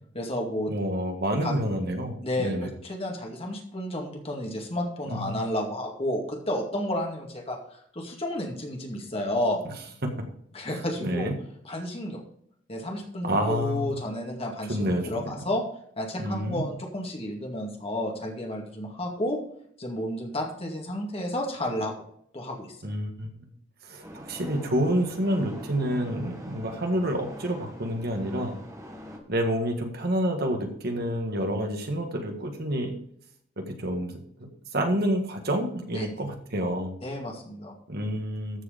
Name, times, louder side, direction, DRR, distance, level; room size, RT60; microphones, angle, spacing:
voice 1, 0.1-0.7 1.4-1.5 2.2-9.6 10.5-11.3 11.6-12.2 12.7-15.6 16.0-19.4 19.8-21.9 22.3-22.8 35.9-36.1 37.0-37.7, left 1 dB, 30° left, 1 dB, 2.1 m, -31 dB
voice 2, 0.7-2.7 5.1-5.3 11.0-11.3 13.2-13.9 14.7-15.4 16.2-16.6 22.8-23.3 23.8-28.5 29.3-32.9 33.6-37.0 37.9-38.6, equal, 55° right, 4 dB, 1.7 m, -28 dB
sound 1, 24.0-29.2, equal, 15° right, 1.6 m, -43 dB
14.0 x 4.9 x 5.1 m, 0.67 s
head